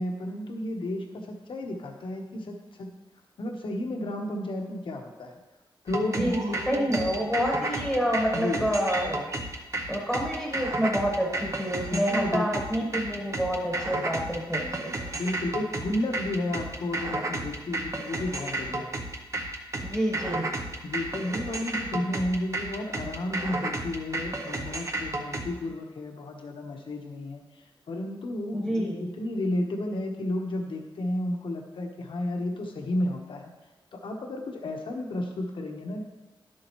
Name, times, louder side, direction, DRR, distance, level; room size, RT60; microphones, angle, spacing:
voice 1, 0.0-2.9 3.4-5.4 5.8-7.1 8.3-8.7 11.9-12.6 15.1-19.0 20.8-33.5 33.9-36.0, left 1 dB, 70° left, 2 dB, 1.2 m, -32 dB
sound 1, 5.9-25.5, right 2 dB, 35° right, 0.7 m, -33 dB
voice 2, 6.0-9.2 9.9-14.9 19.8-20.5 28.5-29.1, equal, 5° right, -1 dB, 1.3 m, -28 dB
11.0 x 7.6 x 3.1 m, 1.1 s
wide cardioid pair, 155°, 9 cm